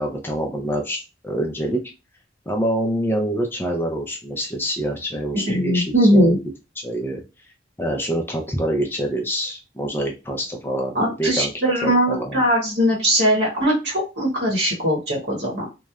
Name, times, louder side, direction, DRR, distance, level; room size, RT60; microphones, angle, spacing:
voice 1, 0.0-1.8 2.5-6.4 6.8-7.2 7.8-11.5 11.8-12.4, equal, 10° left, 1 dB, 0.4 m, -26 dB
voice 2, 5.5-6.4 10.9-15.6, equal, 80° right, -4 dB, 1.0 m, -20 dB
3.0 x 2.1 x 2.3 m, 0.28 s
head